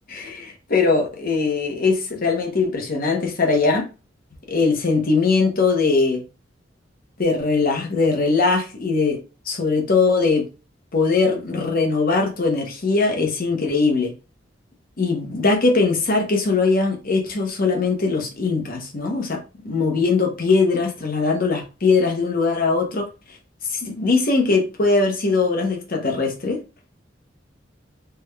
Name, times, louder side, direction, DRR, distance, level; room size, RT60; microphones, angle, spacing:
voice 1, 0.1-3.8 4.5-6.2 7.2-9.2 9.5-10.5 10.9-14.1 15.0-19.4 19.6-23.1 23.7-26.6, left 4 dB, 50° left, 0.9 m, -20 dB
3.5 x 2.2 x 3.3 m
head